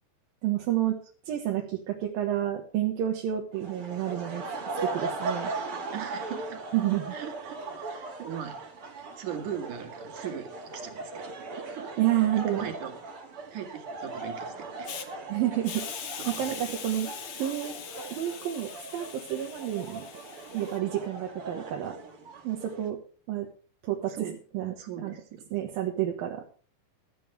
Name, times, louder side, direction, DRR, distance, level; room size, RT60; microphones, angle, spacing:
voice 1, 0.4-1.0 1.3-4.4 4.8-5.5 6.7-7.2 12.0-12.7 15.3-15.9 16.3-17.1 17.3-17.8 18.1-20.0 20.5-22.0 22.4-23.0 23.3-23.5 23.8-25.1 25.5-26.4, right 12 dB, 75° right, 1 dB, 3.1 m, -29 dB
sound 1, 3.5-22.9, right 3 dB, 40° right, 2.8 m, -39 dB
voice 2, 5.9-6.6 7.1-8.5 9.2-12.0 12.3-12.9 13.5-15.0 16.2-16.6 24.1-24.4 24.8-25.6, right 9 dB, 60° right, 4 dB, 3.4 m, -39 dB
Hiss, 14.8-15.1 15.6-20.8, left 9 dB, 60° left, 2.1 m, -41 dB
16.0 x 12.5 x 3.4 m, 0.41 s
omnidirectional pair, 4.2 m